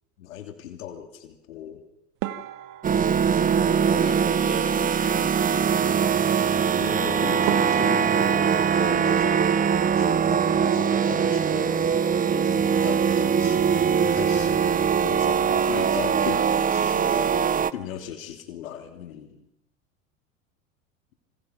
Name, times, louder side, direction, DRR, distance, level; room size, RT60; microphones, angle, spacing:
voice 1, 0.2-1.8 6.8-9.5 10.0-11.9 12.3-13.6 13.9-17.3 17.7-19.5, left 10 dB, 75° left, 5 dB, 2.9 m, -37 dB
sound 1, 2.2-4.7 6.9-7.0 7.5-10.2 10.5-11.3 11.6-11.8 12.1-12.2 12.8-13.1, right 13 dB, 50° right, 1.7 m, -38 dB
sound 2, 2.8-17.7, right 7 dB, 20° right, 0.8 m, -22 dB
voice 2, 3.6-6.0, left 3 dB, 15° left, 3 dB, 7.8 m, -41 dB
27.0 x 26.0 x 5.8 m, 0.77 s
hypercardioid pair, 85°, 41 cm